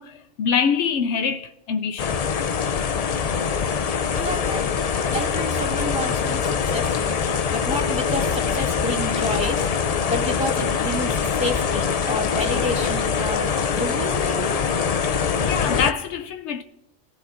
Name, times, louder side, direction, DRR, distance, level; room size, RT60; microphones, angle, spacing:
voice 1, 0.0-2.2 15.5-16.6, left 6 dB, 75° left, 0.9 m, -24 dB
sound 1, 2.0-15.9, left 6 dB, 55° left, 0.4 m, -23 dB
voice 2, 4.1-4.8 5.1-7.2 7.5-14.6, equal, 5° right, 2.2 m, -30 dB
23.5 x 14.5 x 2.5 m
omnidirectional pair, 1.2 m